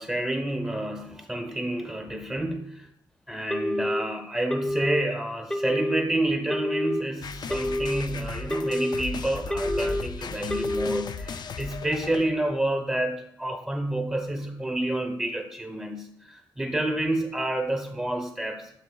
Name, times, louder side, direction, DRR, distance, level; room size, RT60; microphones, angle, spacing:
voice 1, 0.0-2.9 3.3-18.6, right 1 dB, 15° right, 2 dB, 1.1 m, -29 dB
Telephone, 3.5-4.0 4.5-5.0 5.5-6.0 6.5-7.0 7.5-8.0 8.5-9.0 9.5-10.0 10.5-11.0, left 1 dB, 5° left, 0.9 m, -28 dB
sound 1, 7.2-12.5, left 4 dB, 60° left, 0.4 m, -36 dB
10.0 x 6.8 x 2.3 m, 0.71 s
cardioid pair, 60°, 8 cm